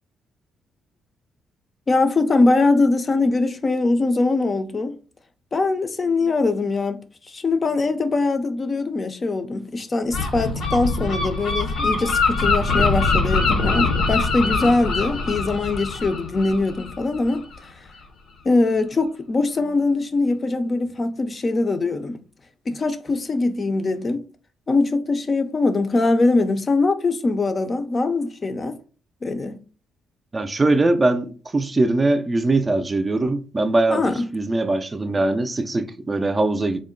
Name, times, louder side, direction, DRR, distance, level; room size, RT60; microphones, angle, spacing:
voice 1, 1.9-5.0 5.5-17.5 17.8-17.9 18.4-22.2 22.7-24.2 24.7-28.8 29.2-29.6 33.9-34.2, left 3 dB, 35° left, 0.4 m, -22 dB
Gull seagull, 10.1-17.6, left 3 dB, 80° left, 0.7 m, -23 dB
voice 2, 30.3-36.8, right 2 dB, 25° right, 0.4 m, -21 dB
3.6 x 2.0 x 3.7 m
cardioid pair, 90°, 0 cm